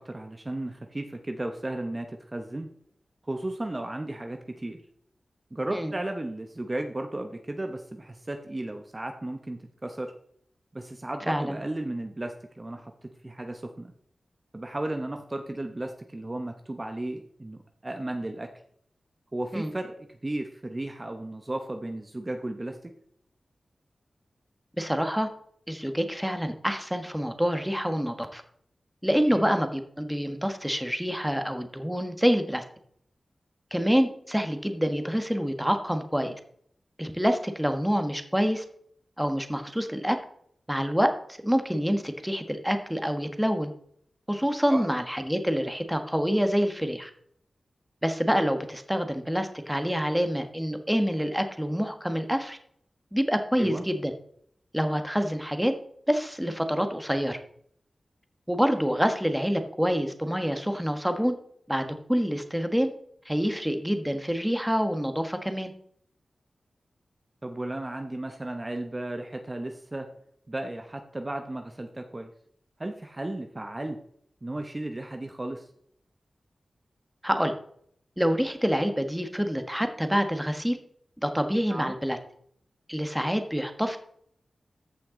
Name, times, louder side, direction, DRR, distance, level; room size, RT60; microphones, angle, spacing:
voice 1, 0.0-2.7 3.2-4.8 5.5-10.1 10.7-13.9 14.5-18.5 19.3-22.9 29.3-29.4 44.7-44.9 53.6-53.8 67.4-70.1 70.5-72.3 72.8-74.0 74.4-75.7 81.7-81.9, right 1 dB, 30° right, 5 dB, 1.0 m, -34 dB
voice 2, 11.3-11.6 19.5-19.7 24.8-25.3 25.7-28.4 29.0-32.6 33.7-36.3 37.0-38.6 39.2-40.2 40.7-43.7 44.3-47.1 48.0-52.6 53.1-54.1 54.7-55.7 56.1-57.4 58.5-61.4 61.7-62.9 63.2-65.7 77.2-77.5 78.2-80.8 81.2-82.2 82.9-84.0, equal, 5° right, 7 dB, 1.4 m, -27 dB
14.0 x 5.8 x 3.9 m, 0.65 s
wide cardioid pair, 60°, 0 cm